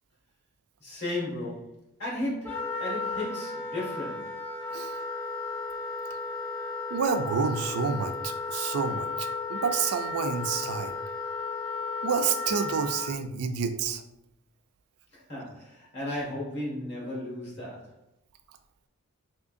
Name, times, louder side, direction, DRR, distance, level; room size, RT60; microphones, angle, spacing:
voice 1, 0.8-4.4 15.1-17.9, left 1 dB, 50° left, -4 dB, 1.5 m, -35 dB
Wind instrument woodwind instrument, 2.4-13.1, left 3 dB, 10° left, 0.5 m, -34 dB
voice 2, 6.9-10.9 12.0-14.0, right 6 dB, 75° right, 7 dB, 0.4 m, -29 dB
3.6 x 3.1 x 2.5 m, 0.82 s
head